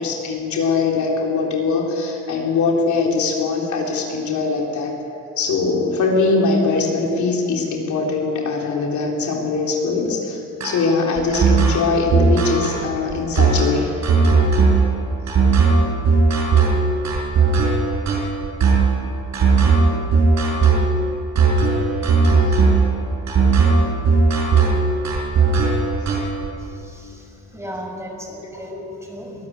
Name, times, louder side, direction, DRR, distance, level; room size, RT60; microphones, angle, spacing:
voice 1, 0.0-5.0 5.4-13.9, left 4 dB, 70° left, -1 dB, 3.7 m, -21 dB
sound 1, 10.6-26.5, right 4 dB, 65° right, 5.1 m, -17 dB
voice 2, 26.6-29.4, equal, 10° right, 0 dB, 5.9 m, -35 dB
23.0 x 13.5 x 9.2 m, 2.8 s
cardioid pair, 90°, 30 cm